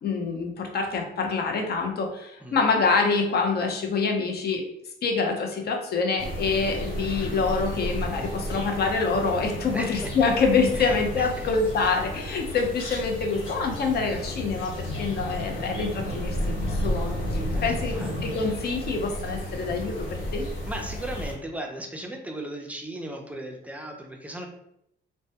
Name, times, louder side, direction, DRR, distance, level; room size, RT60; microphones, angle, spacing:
voice 1, 0.0-4.7 5.0-17.9 18.2-20.5, left 4 dB, 55° left, 3 dB, 0.5 m, -26 dB
sound 1, 6.2-21.3, equal, 75° left, 1.2 m, -32 dB
voice 2, 9.7-10.1 10.7-11.5 11.8-11.9 17.5-18.4 20.7-24.5, right 1 dB, 5° right, 2 dB, 0.4 m, -37 dB
2.1 x 2.1 x 2.7 m, 0.76 s
cardioid pair, 90°, 20 cm